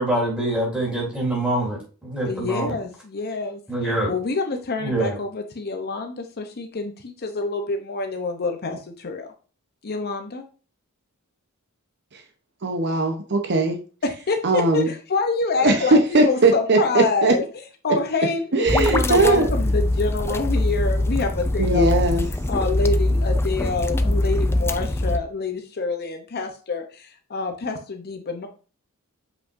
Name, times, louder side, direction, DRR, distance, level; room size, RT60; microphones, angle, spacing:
voice 1, 0.0-2.7 3.7-4.1 4.8-5.2, right 1 dB, 5° right, -4 dB, 3.6 m, -25 dB
voice 2, 2.3-3.6 4.1-9.3 9.8-10.4 14.0-17.4 17.8-22.0 22.5-28.5, left 3 dB, 45° left, 5 dB, 0.7 m, -26 dB
voice 3, 12.6-13.8 14.4-14.9 15.6-17.3 18.5-19.5 21.6-22.2, right 2 dB, 50° right, 4 dB, 0.9 m, -19 dB
sound 1, 18.7-25.2, left 1 dB, 10° left, 0.4 m, -22 dB
7.2 x 5.5 x 2.6 m, 0.36 s
head